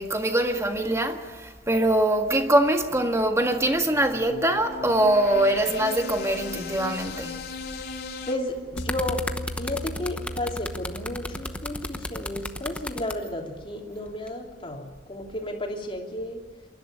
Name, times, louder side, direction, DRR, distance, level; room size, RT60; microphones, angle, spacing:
voice 1, 0.0-7.5, right 1 dB, 15° right, 1.7 m, -23 dB
sound 1, 3.5-8.4, left 4 dB, 60° left, 2.5 m, -37 dB
voice 2, 8.3-9.2 9.6-16.4, left 1 dB, 30° left, 3.1 m, -33 dB
sound 2, 8.5-13.2 14.1-14.3, left 1 dB, 5° left, 0.9 m, -34 dB
sound 3, 8.8-13.1, equal, 80° left, 1.6 m, -39 dB
27.5 x 11.5 x 9.1 m
head